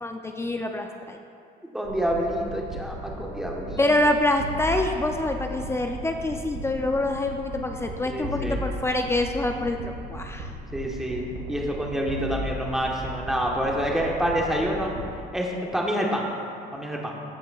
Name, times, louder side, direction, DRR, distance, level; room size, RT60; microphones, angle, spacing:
voice 1, 0.0-1.2 3.8-10.5, left 1 dB, 15° left, 4 dB, 0.4 m, -26 dB
voice 2, 1.6-3.9 8.0-8.6 10.7-14.9 15.3-16.3 16.7-17.2, equal, 5° right, -2 dB, 1.1 m, -27 dB
sound 1, 1.9-15.2, equal, 70° right, 1.7 m, -36 dB
15.0 x 5.3 x 2.3 m, 2.4 s
cardioid pair, 110°, 17 cm